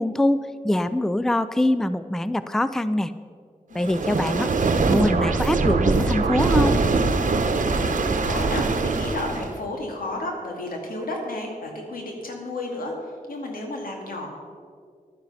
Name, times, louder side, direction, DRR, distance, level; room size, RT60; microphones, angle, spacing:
voice 1, 0.0-3.1 3.7-4.5 4.9-6.8, left 1 dB, 5° left, 13 dB, 0.4 m, -23 dB
voice 2, 3.7-4.5 7.7-14.3, left 2 dB, 85° left, 1 dB, 2.4 m, -33 dB
sound 1, 3.8-9.6, right 3 dB, 60° right, 1.0 m, -22 dB
11.5 x 9.5 x 5.7 m, 2.1 s
cardioid pair, 75°, 14 cm